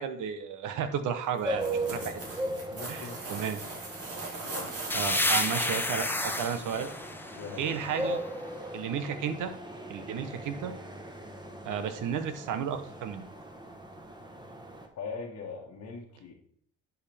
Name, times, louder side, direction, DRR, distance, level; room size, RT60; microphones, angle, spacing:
voice 1, 0.0-2.2 2.9-3.6 4.9-6.9 7.6-8.2 8.7-9.5 9.9-10.7 11.6-13.2, right 8 dB, 80° right, 10 dB, 1.0 m, -33 dB
sound 1, 1.4-14.9, right 1 dB, 15° right, 1.2 m, -39 dB
sound 2, 1.4-5.4 5.9-6.0, right 3 dB, 50° right, 2.5 m, -40 dB
voice 2, 2.7-3.2 4.4-4.7 7.3-7.8 15.0-16.3, left 4 dB, 65° left, -2 dB, 1.4 m, -41 dB
sound 3, 4.9-8.5, left 2 dB, 5° left, 0.7 m, -31 dB
10.5 x 4.9 x 3.4 m, 0.64 s
cardioid pair, 90°, 30 cm